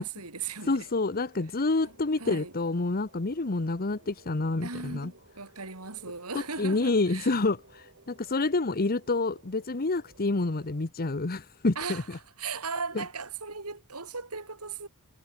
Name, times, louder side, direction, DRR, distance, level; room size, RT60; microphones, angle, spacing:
voice 1, 0.0-0.8 2.2-2.5 4.6-7.3 11.8-12.0 12.4-14.9, right 5 dB, 90° right, 5.3 m, -37 dB
voice 2, 0.7-5.1 6.3-12.2 12.9-13.0, left 3 dB, 45° left, 1.0 m, -28 dB
sound 1, 0.8-10.8, right 3 dB, 55° right, 6.6 m, -58 dB
head